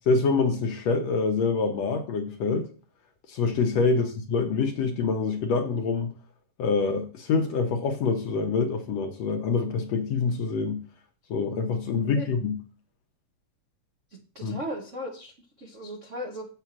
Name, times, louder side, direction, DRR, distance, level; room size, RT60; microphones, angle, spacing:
voice 1, 0.1-2.7 3.3-6.1 6.6-10.8 11.3-12.6 14.4-14.6, left 4 dB, 70° left, 1.7 m, -26 dB
voice 2, 14.1-15.3 15.6-16.5, equal, 50° right, 0.9 m, -37 dB
8.1 x 5.0 x 7.3 m
omnidirectional pair, 3.7 m